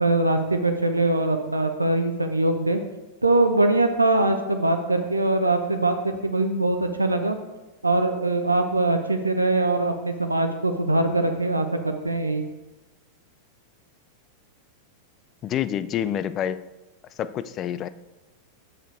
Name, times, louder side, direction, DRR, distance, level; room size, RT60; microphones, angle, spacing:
voice 1, 0.0-2.8 3.2-7.4 7.8-12.4, right 2 dB, 80° right, 6 dB, 0.6 m, -22 dB
voice 2, 15.4-16.6 17.2-17.9, left 10 dB, 30° left, 14 dB, 0.4 m, -27 dB
6.5 x 6.4 x 4.7 m, 1.0 s
figure-of-eight pair, 90°, 0 cm